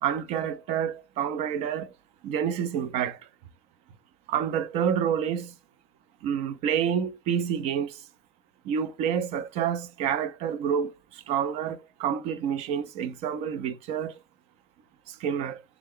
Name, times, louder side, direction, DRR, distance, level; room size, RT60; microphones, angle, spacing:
voice 1, 0.0-1.9 2.2-3.3 4.3-5.5 6.2-8.0 8.6-14.2 15.1-15.6, right 8 dB, 65° right, 0.6 m, -28 dB
3.5 x 2.2 x 3.6 m
cardioid pair, 135°, 11 cm